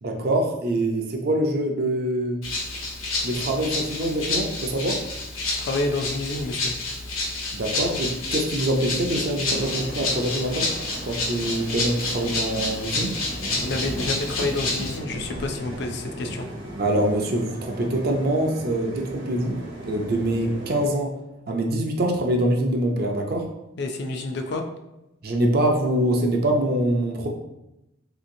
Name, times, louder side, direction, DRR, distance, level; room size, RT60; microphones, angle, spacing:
voice 1, 0.0-2.4 3.2-5.0 7.5-10.7 11.0-13.2 16.8-21.2 21.5-23.5 25.2-27.3, right 1 dB, 50° right, 2 dB, 0.5 m, -24 dB
Rattle (instrument), 2.4-15.0, left 2 dB, 85° left, 1.0 m, -29 dB
voice 2, 5.6-6.7 13.5-16.5 23.8-24.6, left 2 dB, 55° left, 5 dB, 0.3 m, -29 dB
sound 1, 9.4-20.9, right 1 dB, 65° right, 1.0 m, -37 dB
3.2 x 2.8 x 2.6 m, 0.90 s
head